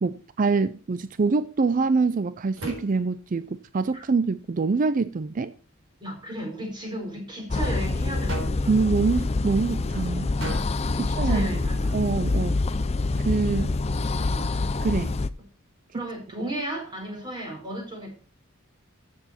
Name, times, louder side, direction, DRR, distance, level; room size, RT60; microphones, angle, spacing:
voice 1, 0.0-5.5 8.7-10.3 11.0-11.6 11.9-12.6 13.2-13.7 14.8-15.2, right 4 dB, 40° right, 0.4 m, -25 dB
sound 1, 0.5-17.4, right 1 dB, 65° right, 4.7 m, -45 dB
voice 2, 6.0-8.7 11.0-11.9 14.3-14.5 15.9-18.1, right 1 dB, 20° right, 4.5 m, -34 dB
sound 2, 7.5-15.3, left 3 dB, 30° left, 0.5 m, -26 dB
14.0 x 7.6 x 4.3 m
head